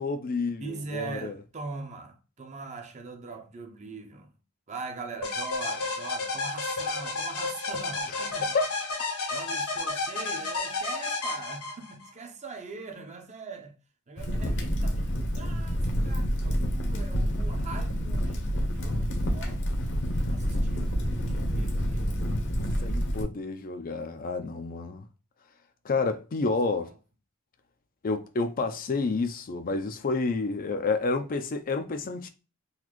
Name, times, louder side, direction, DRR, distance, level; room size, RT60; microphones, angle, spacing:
voice 1, 0.0-1.3 8.5-8.7 22.8-25.0 25.8-26.9 28.0-32.3, left 3 dB, 40° left, 0.4 m, -29 dB
voice 2, 0.6-4.4 4.7-8.6 9.3-13.8 14.1-19.7 20.3-22.2 22.6-23.0 26.8-27.0, right 4 dB, 30° right, 0.7 m, -42 dB
sound 1, 5.2-12.1, left 3 dB, 85° left, 1.3 m, -31 dB
Crackle, 14.2-23.2, equal, 55° left, 0.9 m, -28 dB
4.0 x 2.6 x 3.0 m
head